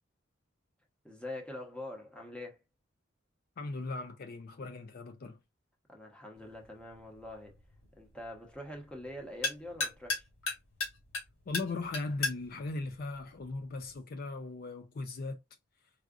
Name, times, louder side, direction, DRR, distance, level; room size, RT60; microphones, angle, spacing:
voice 1, 1.0-2.6 5.9-7.6 8.0-10.2, left 1 dB, 5° left, 1.0 m, -44 dB
voice 2, 3.6-5.4 11.5-15.4, left 3 dB, 50° left, 0.4 m, -38 dB
sound 1, 6.4-14.0, left 3 dB, 90° left, 2.1 m, -39 dB
4.7 x 2.4 x 2.4 m
head